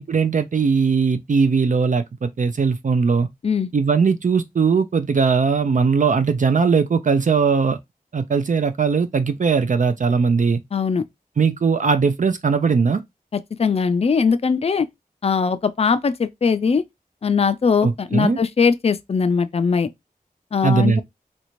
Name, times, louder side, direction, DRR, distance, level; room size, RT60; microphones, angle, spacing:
voice 1, 0.0-3.3 3.7-7.8 8.1-10.6 11.4-13.0 17.8-18.4 20.6-21.0, right 5 dB, 60° right, 0.4 m, -19 dB
voice 2, 10.7-11.0 13.6-14.9 15.2-16.8 17.2-19.9 20.5-21.0, left 5 dB, 40° left, 0.3 m, -20 dB
3.2 x 2.6 x 3.0 m
wide cardioid pair, 55°, 15 cm